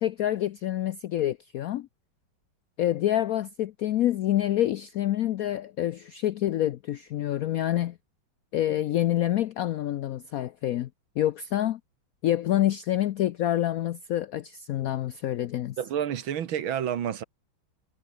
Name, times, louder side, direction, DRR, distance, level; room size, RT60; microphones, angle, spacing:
voice 1, 0.0-1.9 2.8-8.0 8.5-10.9 11.2-11.8 12.2-15.8, left 12 dB, 90° left, 0.7 m, -27 dB
voice 2, 15.8-17.2, right 9 dB, 80° right, 2.1 m, -29 dB
omnidirectional pair, 2.2 m